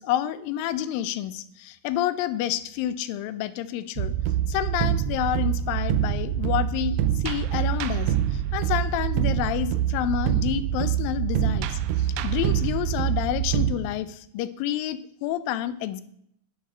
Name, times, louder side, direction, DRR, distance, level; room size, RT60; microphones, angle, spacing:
voice 1, 0.0-4.1 4.5-16.0, left 12 dB, 85° left, 13 dB, 2.4 m, -29 dB
sound 1, 4.0-13.7, right 10 dB, 80° right, 1.9 m, -25 dB
9.7 x 7.2 x 6.1 m, 0.70 s
omnidirectional pair, 4.0 m